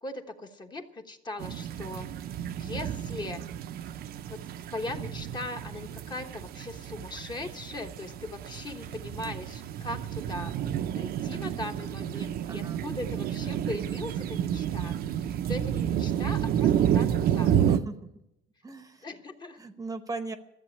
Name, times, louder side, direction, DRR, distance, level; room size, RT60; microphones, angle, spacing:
voice 1, 0.0-3.4 4.3-4.4 4.7-10.5 10.9-17.5 19.0-19.6, left 2 dB, 25° left, 5 dB, 1.2 m, -39 dB
sound 1, 1.4-17.8, right 10 dB, 55° right, 0.7 m, -30 dB
voice 2, 12.5-12.8 17.7-18.0 18.6-19.0 19.6-20.4, right 3 dB, 20° right, 9 dB, 0.9 m, -37 dB
14.0 x 7.8 x 9.9 m, 0.86 s
cardioid pair, 125°, 19 cm